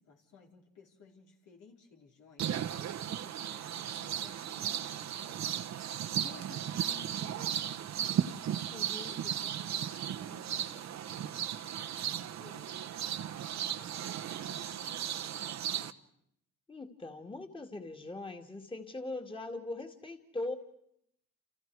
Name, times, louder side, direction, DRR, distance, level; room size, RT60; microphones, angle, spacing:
voice 1, 0.0-5.6 6.1-8.3 9.1-16.1, left 5 dB, 80° left, 0 dB, 4.6 m, -57 dB
sound 1, 2.4-15.9, right 10 dB, 65° right, 1.1 m, -36 dB
voice 2, 8.7-9.2 16.7-20.6, left 2 dB, 15° left, 4 dB, 2.3 m, -41 dB
29.5 x 29.0 x 4.8 m, 0.75 s
cardioid pair, 90°, 30 cm